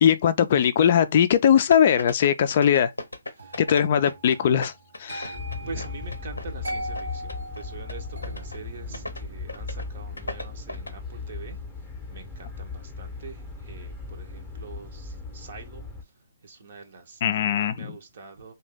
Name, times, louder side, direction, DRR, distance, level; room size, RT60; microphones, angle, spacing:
voice 1, 0.0-2.9 3.6-4.7 5.0-5.4 17.2-17.9, left 9 dB, 40° left, 0.3 m, -20 dB
sound 1, 1.7-4.4 4.6-7.0 7.3-7.6 7.9-8.0 8.2-8.6 8.9-9.2 9.5-9.9 10.2-10.9, left 2 dB, 90° left, 0.6 m, -35 dB
sound 2, 3.4-14.3 14.6-15.0, right 1 dB, 85° right, 0.8 m, -42 dB
sound 3, 5.3-16.0, left 4 dB, 5° left, 0.7 m, -37 dB
voice 2, 5.7-11.6 12.1-15.9 16.4-18.5, right 4 dB, 50° right, 0.6 m, -44 dB
2.6 x 2.3 x 3.4 m
figure-of-eight pair, 140°, 0 cm